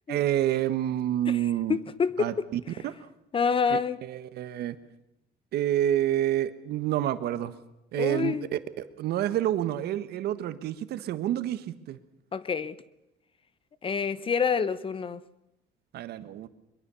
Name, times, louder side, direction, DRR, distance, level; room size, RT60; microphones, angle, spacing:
voice 1, 0.1-1.8 2.2-3.0 3.7-4.8 5.5-7.5 7.9-8.3 8.8-12.0 15.9-16.5, right 12 dB, 70° right, 1.4 m, -28 dB
voice 2, 1.3-2.5 3.3-4.0 7.9-8.5 12.3-12.8 13.8-15.2, left 6 dB, 30° left, 1.0 m, -27 dB
22.5 x 22.0 x 7.0 m
cardioid pair, 110°, 17 cm